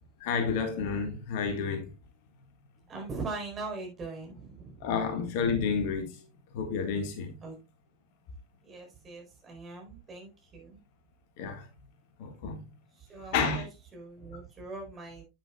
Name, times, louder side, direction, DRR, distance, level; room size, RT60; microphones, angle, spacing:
voice 1, 0.2-1.9 4.8-6.1 6.5-7.3 11.4-11.6 12.2-12.6 13.3-13.7, left 5 dB, 50° left, 1.7 m, -30 dB
voice 2, 2.9-4.9 7.4-7.6 8.6-10.8 13.0-15.2, right 3 dB, 25° right, 4.3 m, -41 dB
9.9 x 9.0 x 2.4 m
figure-of-eight pair, 90°, 0 cm